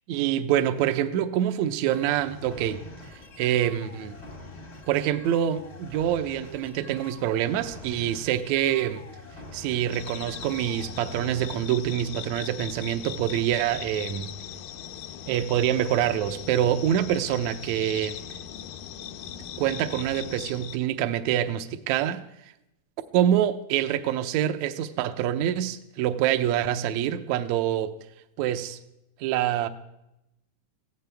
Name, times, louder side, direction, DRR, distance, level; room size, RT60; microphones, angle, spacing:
voice 1, 0.1-2.8 3.4-4.2 4.9-9.0 9.5-14.3 15.3-18.2 19.6-22.2 23.1-28.0 28.4-28.8 29.2-29.7, right 11 dB, 85° right, 9 dB, 1.6 m, -26 dB
sound 1, 1.9-11.7, left 2 dB, 50° left, 0.7 m, -45 dB
sound 2, 9.9-20.8, left 9 dB, 80° left, 2.2 m, -40 dB
22.0 x 16.0 x 3.4 m, 0.87 s
omnidirectional pair, 4.3 m